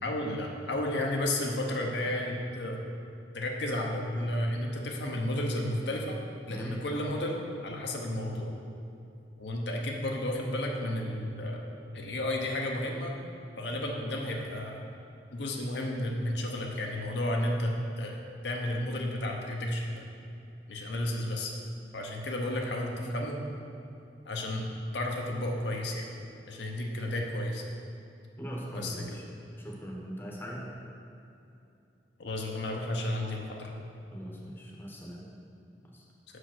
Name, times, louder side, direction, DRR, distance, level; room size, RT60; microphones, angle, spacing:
voice 1, 0.0-2.8 3.3-6.2 6.5-8.5 9.4-11.6 11.9-13.1 13.6-14.8 15.3-18.2 18.4-20.1 20.7-21.5 21.9-23.4 24.2-26.1 26.5-27.6 28.7-29.2 32.2-33.7, left 1 dB, 65° left, 0 dB, 0.8 m, -32 dB
voice 2, 28.4-29.2 29.6-30.7 34.1-35.2 35.9-36.0, equal, 10° left, -2 dB, 0.9 m, -40 dB
6.4 x 4.9 x 5.9 m, 2.7 s
head